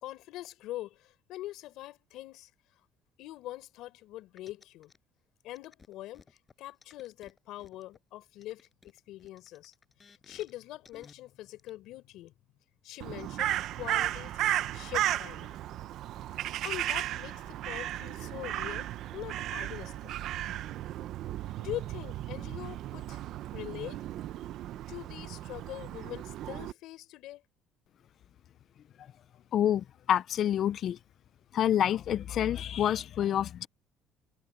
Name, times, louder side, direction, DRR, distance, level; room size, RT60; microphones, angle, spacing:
voice 1, 0.0-2.5 3.2-4.9 5.4-9.7 10.0-12.4 12.8-14.3 14.7-15.6 16.3-19.9 21.6-23.2 23.5-24.0 24.9-27.4, left 15 dB, 70° left, 4.5 m, -43 dB
sound 1, 4.4-5.0 5.5-8.0 8.4-10.5 10.8-11.1 11.6-11.7, left 4 dB, 25° left, 6.5 m, -57 dB
Crow, 13.0-26.7, right 13 dB, 60° right, 0.8 m, -35 dB
voice 2, 29.5-31.0 31.5-33.7, left 10 dB, 50° left, 0.5 m, -28 dB
cardioid pair, 135°, 0 cm